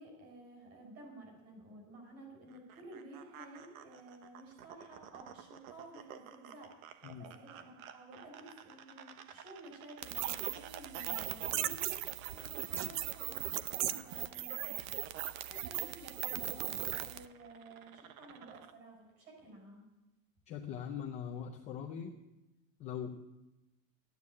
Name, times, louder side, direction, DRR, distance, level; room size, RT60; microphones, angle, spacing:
voice 1, 0.0-19.8, right 2 dB, 35° right, 1 dB, 6.1 m, -53 dB
sound 1, 2.5-18.7, right 9 dB, 75° right, 1.3 m, -54 dB
sound 2, 10.0-17.2, right 13 dB, 55° right, 0.7 m, -38 dB
voice 2, 20.5-22.1 22.8-23.1, left 8 dB, 15° left, 1 dB, 0.5 m, -41 dB
13.5 x 9.8 x 8.3 m, 0.97 s
supercardioid pair, 175°, 42 cm